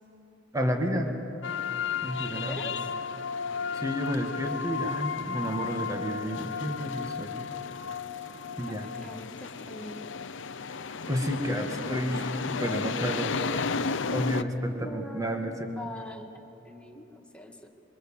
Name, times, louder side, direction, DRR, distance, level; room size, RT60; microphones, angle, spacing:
voice 1, 0.5-1.1 2.0-2.6 3.7-7.3 8.6-8.9 11.1-13.4 14.1-15.5, equal, 15° right, 3 dB, 2.0 m, -31 dB
sound 1, 1.4-14.4, left 5 dB, 70° left, 0.7 m, -33 dB
voice 2, 2.3-2.7 8.7-10.1 14.4-14.5 14.8-16.3 16.6-17.7, left 1 dB, 5° left, 2 dB, 1.8 m, -43 dB
26.5 x 25.0 x 7.3 m, 3.0 s
head